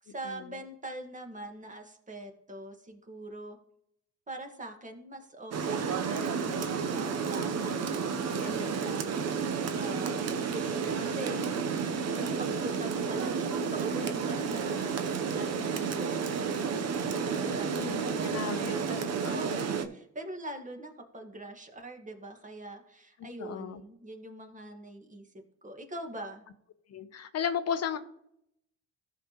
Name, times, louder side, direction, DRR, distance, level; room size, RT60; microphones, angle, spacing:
voice 1, 0.0-3.6 4.3-7.9 8.4-9.3 9.8-11.5 12.1-25.3 25.6-26.4, right 1 dB, 25° right, 4 dB, 1.8 m, -43 dB
Rain, 5.5-19.8, right 6 dB, 55° right, 0.9 m, -31 dB
voice 2, 8.4-9.0 17.4-19.4 23.4-23.8 26.9-28.0, left 7 dB, 55° left, 9 dB, 0.8 m, -35 dB
14.5 x 5.9 x 3.1 m, 0.74 s
cardioid pair, 90°, 30 cm